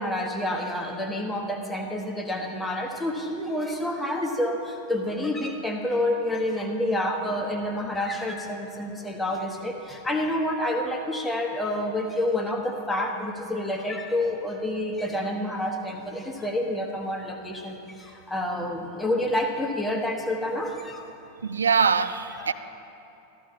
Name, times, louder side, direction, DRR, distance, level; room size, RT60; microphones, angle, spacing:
voice 1, 0.0-21.1 22.4-22.5, left 1 dB, 10° left, 2 dB, 1.1 m, -28 dB
voice 2, 21.4-22.5, right 6 dB, 70° right, 12 dB, 0.3 m, -23 dB
13.5 x 13.0 x 2.8 m, 2.9 s
figure-of-eight pair, 90°, 0 cm